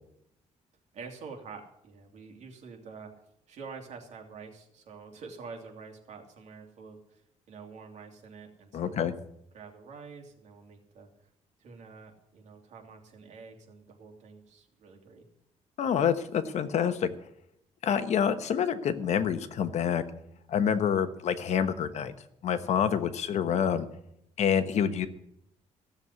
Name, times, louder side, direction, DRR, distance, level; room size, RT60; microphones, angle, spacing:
voice 1, 0.9-3.1 3.5-7.2 7.5-9.1 9.5-11.1 11.6-15.3, right 5 dB, 65° right, 2 dB, 2.9 m, -47 dB
voice 2, 8.7-9.1 15.8-17.1 17.8-20.0 20.5-22.1 22.4-23.9 24.4-25.1, left 8 dB, 60° left, 10 dB, 1.1 m, -27 dB
15.5 x 7.3 x 9.6 m, 0.76 s
cardioid pair, 155°, 13 cm